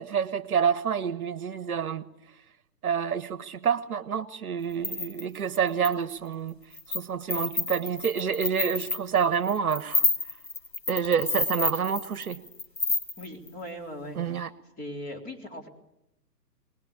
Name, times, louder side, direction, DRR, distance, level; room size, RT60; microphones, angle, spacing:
voice 1, 0.0-2.0 2.8-6.5 6.9-10.0 10.9-12.4 14.1-14.5, right 7 dB, 60° right, 15 dB, 1.2 m, -28 dB
sound 1, 4.7-5.9 6.5-7.0 7.3-13.5, left 3 dB, 80° left, 3.3 m, -29 dB
voice 2, 13.2-14.5 14.8-15.7, left 1 dB, 15° left, 1 dB, 4.1 m, -39 dB
23.0 x 21.0 x 8.6 m, 0.83 s
figure-of-eight pair, 125°, 50 cm